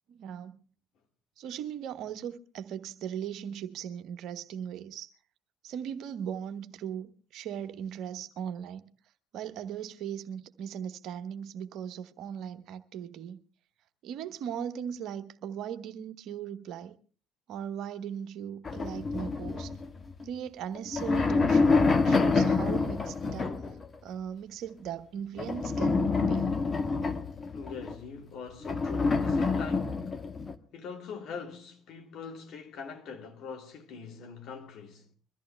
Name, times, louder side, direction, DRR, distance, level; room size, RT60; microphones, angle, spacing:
voice 1, 0.1-0.6 1.4-5.1 5.6-8.9 9.3-13.4 14.0-16.9 17.5-19.7 20.2-23.6 24.0-26.5, right 9 dB, 60° right, 1.0 m, -38 dB
sound 1, 18.6-20.2 20.8-23.9 25.4-28.0 28.6-30.5, left 4 dB, 35° left, 1.4 m, -27 dB
voice 2, 27.5-30.1 30.7-35.1, left 6 dB, 60° left, 2.4 m, -43 dB
22.5 x 14.0 x 3.4 m
hypercardioid pair, 55°, 0 cm